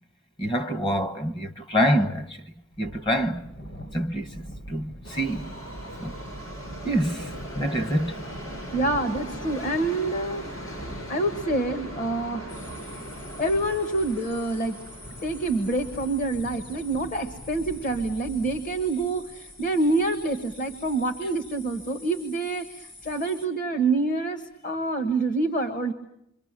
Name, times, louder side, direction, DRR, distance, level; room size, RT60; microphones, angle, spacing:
voice 1, 0.4-2.3 2.8-3.5 3.9-5.5 6.0-6.1 6.8-7.3 7.5-8.2, equal, 25° left, 1.1 m, -26 dB
Thunder, 2.7-21.1, equal, 60° left, 4.7 m, -44 dB
Subway metro underground, 5.0-19.2 19.5-19.6 20.4-20.5 20.8-20.9 21.5-21.6, equal, 75° left, 7.3 m, -40 dB
voice 2, 8.7-10.8 11.1-12.5 13.4-14.8 15.2-25.9, right 2 dB, 40° left, 1.4 m, -27 dB
sound 1, 12.5-23.5, left 2 dB, 90° left, 4.7 m, -48 dB
27.5 x 25.0 x 7.5 m
head